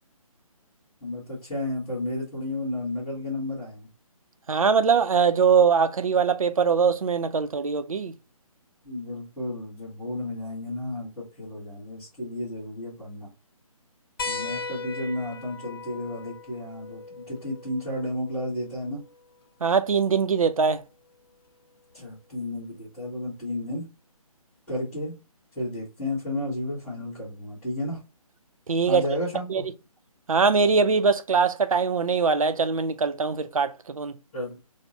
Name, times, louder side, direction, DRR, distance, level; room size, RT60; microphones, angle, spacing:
voice 1, 1.0-3.9 8.8-13.3 14.3-19.0 21.9-23.9 24.7-25.1 25.5-28.0 28.9-29.7 34.3-34.6, left 1 dB, 5° left, 1.0 m, -32 dB
voice 2, 4.5-8.1 19.6-20.8 28.7-29.0 29.5-29.6 30.3-34.2, right 5 dB, 65° right, 0.4 m, -22 dB
sound 1, 14.2-19.3 20.8-20.9 22.6-22.7, left 4 dB, 40° left, 0.5 m, -38 dB
3.5 x 2.1 x 2.8 m
figure-of-eight pair, 145°, 19 cm